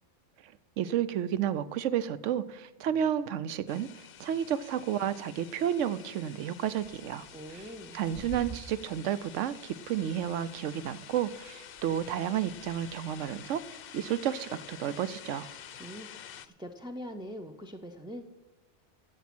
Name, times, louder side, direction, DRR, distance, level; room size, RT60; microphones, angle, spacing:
voice 1, 0.8-3.9 4.2-7.3 7.5-7.6 7.9-13.6 13.9-15.5, right 10 dB, 85° right, 16 dB, 0.9 m, -31 dB
sound 1, 3.7-16.5, left 9 dB, 60° left, 0.7 m, -49 dB
Bird, 6.5-13.6, equal, 65° right, 2.7 m, -51 dB
voice 2, 7.3-8.0 15.8-18.2, equal, 5° right, 3 dB, 0.4 m, -43 dB
14.5 x 7.3 x 6.0 m, 1.2 s
omnidirectional pair, 1.3 m